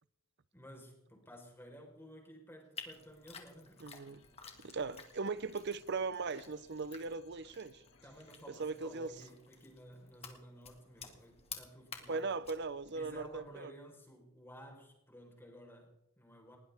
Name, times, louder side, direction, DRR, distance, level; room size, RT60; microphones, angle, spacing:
voice 1, 0.5-3.8 8.0-12.4 12.9-16.6, equal, 10° left, 4.3 m, -54 dB
sound 1, 2.7-13.5, left 6 dB, 30° left, 1.9 m, -53 dB
voice 2, 3.8-4.2 4.6-7.8 8.6-9.1 12.1-13.7, right 4 dB, 55° right, 0.7 m, -39 dB
sound 2, 4.0-9.3, left 4 dB, 80° left, 2.2 m, -67 dB
20.0 x 18.0 x 3.6 m
head